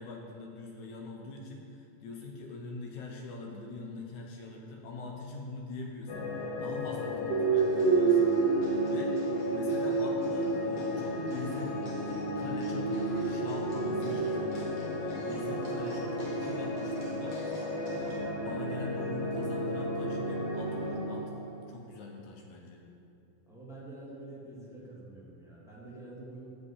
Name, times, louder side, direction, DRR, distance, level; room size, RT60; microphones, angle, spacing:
voice 1, 0.0-8.3 8.9-9.2 9.5-11.8 12.4-17.4 17.9-21.3 21.7-22.8, left 3 dB, 70° left, 1 dB, 2.0 m, -43 dB
sound 1, 6.1-21.0, left 3 dB, 90° left, 3.1 m, -35 dB
sound 2, 7.3-21.5, right 5 dB, 75° right, 2.7 m, -32 dB
sound 3, 7.5-18.2, left 1 dB, 50° left, 2.5 m, -53 dB
voice 2, 23.5-26.5, right 2 dB, ahead, -8 dB, 1.0 m, -47 dB
10.5 x 5.2 x 8.3 m, 2.7 s
omnidirectional pair, 4.0 m